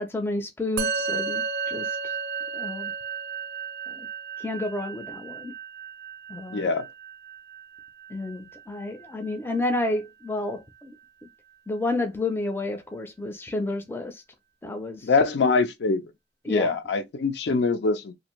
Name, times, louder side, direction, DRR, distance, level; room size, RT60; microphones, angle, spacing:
voice 1, 0.0-2.1 2.5-2.9 3.9-4.1 4.4-5.5 6.3-6.7 8.1-11.0 11.7-14.2 14.6-15.0 16.4-16.8, left 2 dB, 15° left, 0.4 m, -30 dB
Musical instrument, 0.8-10.3, right 5 dB, 65° right, 0.4 m, -34 dB
voice 2, 6.5-6.9 15.0-16.0 16.5-18.1, left 4 dB, 75° left, 0.5 m, -23 dB
2.5 x 2.5 x 3.0 m
head